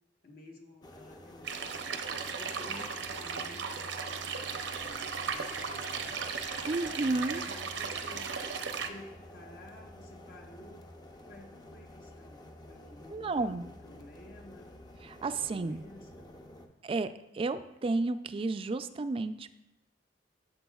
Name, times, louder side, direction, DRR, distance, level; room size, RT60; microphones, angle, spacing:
voice 1, 0.2-1.8 2.3-6.2 6.9-8.3 8.9-10.9 11.3-14.7 15.2-16.3, left 1 dB, 55° left, 1 dB, 1.2 m, -53 dB
sound 1, 0.8-16.7, left 1 dB, 25° left, 0.6 m, -51 dB
sound 2, 1.4-8.9, right 5 dB, 85° right, 0.7 m, -36 dB
sound 3, 4.1-8.8, left 1 dB, 85° left, 2.7 m, -52 dB
voice 2, 6.7-7.4 13.1-13.7 15.0-15.8 16.8-19.6, right 3 dB, 30° right, 11 dB, 0.3 m, -32 dB
12.0 x 6.8 x 2.3 m, 0.90 s
head